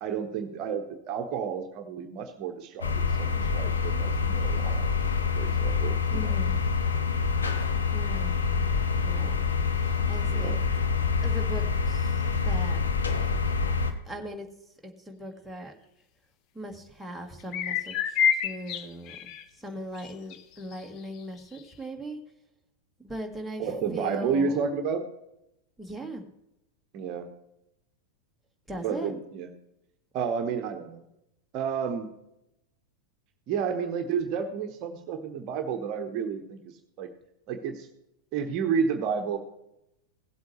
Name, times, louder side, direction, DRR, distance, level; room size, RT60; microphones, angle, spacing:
voice 1, 0.0-4.9 5.3-6.4 10.3-10.6 23.6-25.0 26.9-27.3 28.8-29.5 30.1-31.0 31.5-32.1 33.5-37.1 37.5-37.9 38.3-39.4, right 6 dB, 40° right, 6 dB, 1.0 m, -31 dB
sound 1, 2.8-13.9, left 5 dB, 70° left, 1.0 m, -26 dB
voice 2, 6.1-6.6 7.9-8.8 9.0-9.4 9.8-10.6 11.2-12.8 14.1-14.5 14.8-15.7 16.5-19.3 19.6-22.2 23.0-24.6 25.8-26.2 28.7-29.1, right 1 dB, ahead, 1 dB, 1.5 m, -39 dB
sound 2, 17.4-19.4 19.9-20.4 20.7-20.8 21.5-21.6, left 8 dB, 40° left, 0.7 m, -28 dB
16.5 x 8.0 x 3.2 m, 0.85 s
figure-of-eight pair, 90°, 0 cm